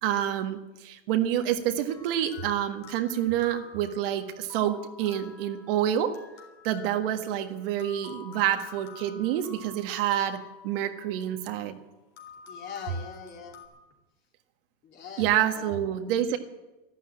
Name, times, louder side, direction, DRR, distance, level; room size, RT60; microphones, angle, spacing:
voice 1, 0.0-6.1 6.6-11.8 15.2-16.4, right 11 dB, 65° right, 6 dB, 1.7 m, -28 dB
sound 1, 1.9-11.6 12.2-13.7, left 5 dB, 65° left, 3.9 m, -49 dB
voice 2, 12.5-13.6 14.8-16.0, left 6 dB, 35° left, 0 dB, 3.7 m, -42 dB
12.5 x 12.0 x 8.7 m, 1.1 s
supercardioid pair, 125°, 30 cm